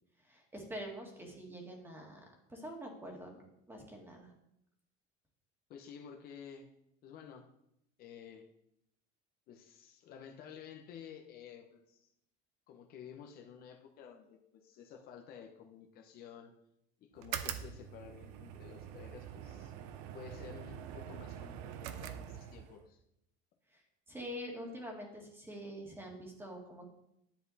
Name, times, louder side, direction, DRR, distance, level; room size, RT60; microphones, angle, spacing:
voice 1, 0.2-2.2 2.5-3.4 3.7-4.3 23.7-23.8 24.1-26.9, equal, 10° right, 1 dB, 2.0 m, -45 dB
voice 2, 5.7-6.7 7.0-7.5 8.0-8.5 9.5-12.1 12.7-16.5 17.0-19.7 20.1-23.0, left 8 dB, 45° left, 4 dB, 1.1 m, -52 dB
sound 1, 17.2-22.8, right 10 dB, 90° right, 0.9 m, -44 dB
10.5 x 8.1 x 4.2 m, 0.79 s
cardioid pair, 155°, 21 cm